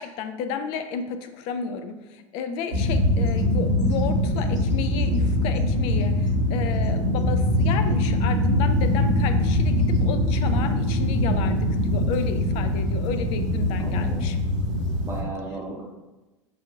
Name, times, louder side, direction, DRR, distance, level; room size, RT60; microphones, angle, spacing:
voice 1, 0.0-14.4, left 6 dB, 35° left, 8 dB, 0.4 m, -32 dB
sound 1, 2.7-15.2, left 1 dB, 70° right, 1.1 m, -23 dB
voice 2, 13.8-14.3 15.0-15.8, right 2 dB, 15° right, -4 dB, 0.7 m, -35 dB
6.3 x 2.6 x 2.6 m, 1.1 s
figure-of-eight pair, 85°, 16 cm